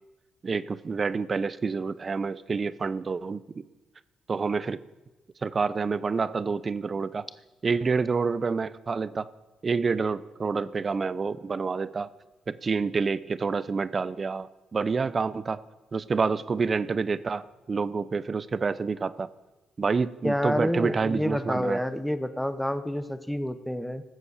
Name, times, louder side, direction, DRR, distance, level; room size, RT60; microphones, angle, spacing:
voice 1, 0.4-3.6 4.3-4.8 5.4-7.3 7.6-9.3 9.6-12.1 12.5-15.6 15.9-19.3 19.8-21.8, right 4 dB, 35° right, 17 dB, 0.6 m, -28 dB
voice 2, 20.2-24.0, equal, 5° left, 11 dB, 0.9 m, -28 dB
14.0 x 7.2 x 8.1 m, 1.1 s
cardioid pair, 90°, 0 cm